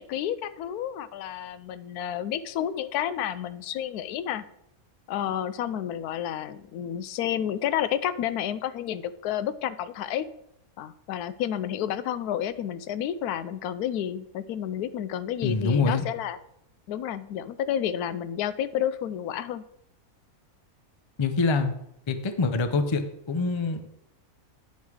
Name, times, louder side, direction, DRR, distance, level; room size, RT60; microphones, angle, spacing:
voice 1, 0.0-4.4 5.1-10.3 10.8-16.4 16.9-19.6, left 10 dB, 85° left, 14 dB, 1.1 m, -30 dB
voice 2, 15.4-16.0 21.2-21.7 22.1-23.9, left 4 dB, 40° left, 8 dB, 0.4 m, -25 dB
9.5 x 5.5 x 4.7 m, 0.79 s
omnidirectional pair, 1.6 m